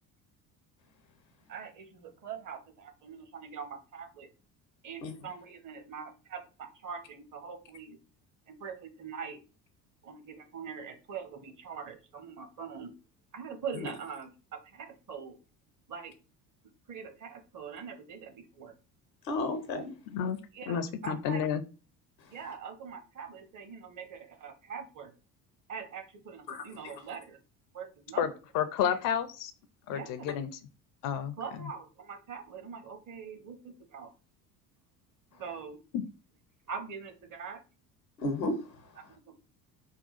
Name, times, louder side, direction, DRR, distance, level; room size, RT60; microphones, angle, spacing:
voice 1, 1.5-4.3 4.8-8.0 8.5-9.4 10.0-12.9 13.3-14.3 14.6-15.4 15.9-16.1 16.9-18.7 20.5-21.4 22.3-25.1 25.7-27.4 27.7-28.3 28.8-29.0 29.9-30.3 31.4-34.1 35.4-35.8 36.7-37.6 39.0-39.3, right 6 dB, 40° right, 1.0 m, -43 dB
voice 2, 19.2-20.0 26.5-26.9 38.2-38.9, left 2 dB, 85° left, 0.8 m, -33 dB
voice 3, 20.7-21.6 28.2-29.5 29.9-30.5 31.0-31.3 35.9-36.0, left 8 dB, 45° left, 0.5 m, -30 dB
3.6 x 2.3 x 4.1 m
figure-of-eight pair, 60°, 49 cm